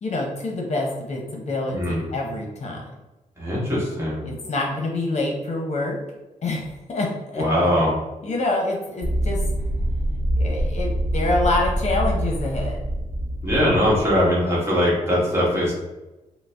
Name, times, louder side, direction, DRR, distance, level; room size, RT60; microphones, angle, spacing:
voice 1, 0.0-2.8 4.2-6.0 6.4-7.7 8.2-9.4 10.4-12.8, left 2 dB, 55° left, -1 dB, 0.7 m, -26 dB
voice 2, 1.7-2.0 3.4-4.3 7.4-8.0 13.4-15.7, equal, 20° right, -6 dB, 1.2 m, -21 dB
sound 1, 9.0-14.2, right 1 dB, 35° right, 0.7 m, -25 dB
3.8 x 2.0 x 3.4 m, 1.1 s
wide cardioid pair, 145°, 14 cm